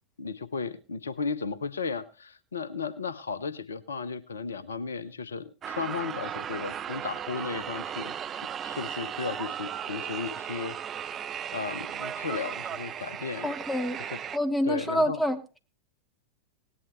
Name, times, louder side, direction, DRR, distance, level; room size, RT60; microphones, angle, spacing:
voice 1, 0.2-10.8 11.0-11.2 11.5-13.5 14.0-14.2 14.6-15.2, left 5 dB, 70° left, 0.7 m, -35 dB
sound 1, 5.6-14.4, right 9 dB, 25° right, 0.5 m, -36 dB
voice 2, 13.4-14.0 14.3-15.4, equal, 5° left, 1.5 m, -27 dB
18.0 x 11.0 x 3.1 m
figure-of-eight pair, 90°, 0 cm